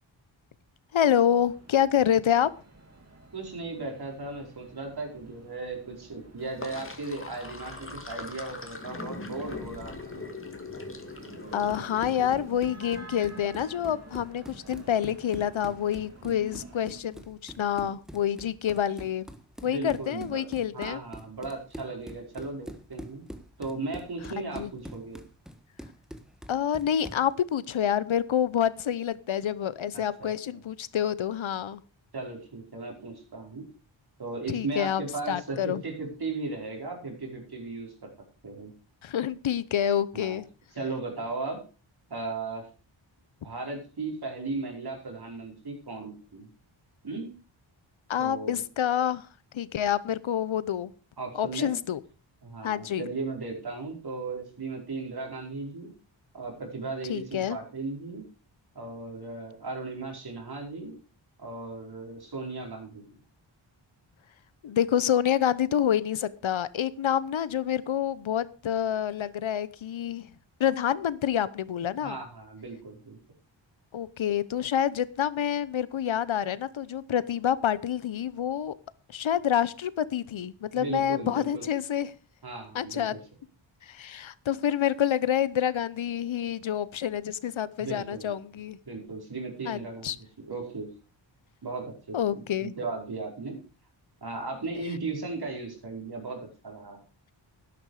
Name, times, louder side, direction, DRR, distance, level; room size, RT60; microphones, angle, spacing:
voice 1, 0.9-2.5 11.5-19.3 19.6-21.0 24.4-24.7 26.5-31.8 34.5-35.0 35.3-35.8 39.0-40.4 48.1-49.3 49.5-50.9 51.4-52.0 52.6-53.1 57.1-57.6 64.6-70.3 70.6-72.2 73.9-78.7 79.1-82.1 82.7-83.2 83.8-88.8 89.7-90.2 92.1-92.7, left 9 dB, 75° left, 17 dB, 1.0 m, -27 dB
sound 1, 1.1-17.0, right 2 dB, 35° right, 2.3 m, -51 dB
voice 2, 3.3-10.3 19.6-20.4 20.7-23.3 23.6-25.2 29.9-30.6 32.1-33.6 34.2-38.1 38.4-38.7 40.1-40.4 40.7-41.6 42.1-42.7 43.4-46.5 47.0-47.3 48.2-48.6 51.2-51.8 52.4-55.9 56.3-58.2 58.7-60.9 61.4-63.0 72.0-73.2 80.7-81.7 82.4-83.2 87.8-88.4 88.9-90.9 91.6-93.6 94.2-97.0, right 3 dB, 50° right, 1 dB, 5.0 m, -36 dB
Sink (filling or washing), 6.4-12.7, left 3 dB, 25° left, 2.4 m, -41 dB
Run, 11.5-27.3, equal, ahead, 1.4 m, -45 dB
12.0 x 10.5 x 4.9 m, 0.34 s
wide cardioid pair, 110°, 47 cm